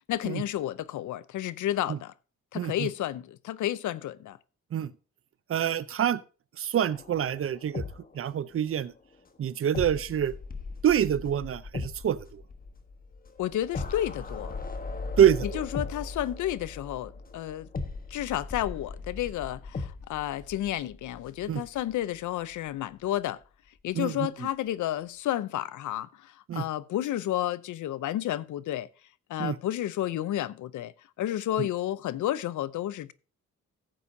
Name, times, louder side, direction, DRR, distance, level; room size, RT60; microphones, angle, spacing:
voice 1, 0.1-2.1 2.5-4.4 13.4-14.5 15.4-17.7 18.1-23.4 23.8-28.9 29.3-30.9 31.2-33.1, left 13 dB, 90° left, 0.6 m, -31 dB
voice 2, 2.5-2.9 4.7-4.9 5.5-6.2 6.6-7.8 8.1-8.9 9.4-10.3 10.8-12.4 15.2-15.6 21.5-21.6 23.9-24.3 26.5-26.6 29.4-29.5 31.6-31.7, right 9 dB, 50° right, 0.6 m, -26 dB
sound 1, 6.9-8.7 9.0-9.1 9.7-22.2 22.5-22.7, left 3 dB, 30° left, 1.2 m, -38 dB
15.0 x 8.4 x 2.7 m
cardioid pair, 120°, 29 cm